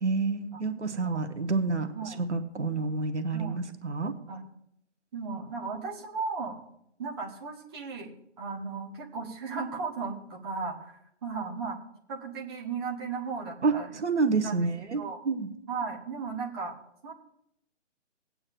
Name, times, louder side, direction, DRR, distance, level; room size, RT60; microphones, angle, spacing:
voice 1, 0.0-1.9 2.2-4.1 13.6-15.5, right 4 dB, 70° right, 8 dB, 1.2 m, -28 dB
voice 2, 5.1-6.6 7.0-11.8 12.1-13.9 14.4-15.2 15.7-16.8 17.0-17.1, right 5 dB, 20° right, -1 dB, 1.0 m, -36 dB
19.5 x 8.7 x 2.5 m, 0.77 s
figure-of-eight pair, 140°, 37 cm